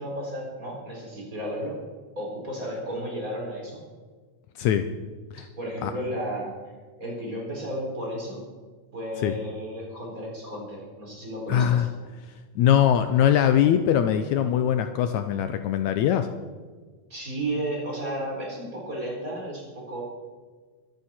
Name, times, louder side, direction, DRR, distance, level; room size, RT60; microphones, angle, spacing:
voice 1, 0.0-1.8 2.2-3.8 5.6-6.5 7.0-8.4 8.9-11.9 17.1-20.0, right 1 dB, 25° right, -3 dB, 4.4 m, -33 dB
voice 2, 11.5-11.9 12.6-16.3, left 10 dB, 80° left, 8 dB, 1.9 m, -21 dB
24.0 x 9.3 x 4.4 m, 1.4 s
omnidirectional pair, 3.6 m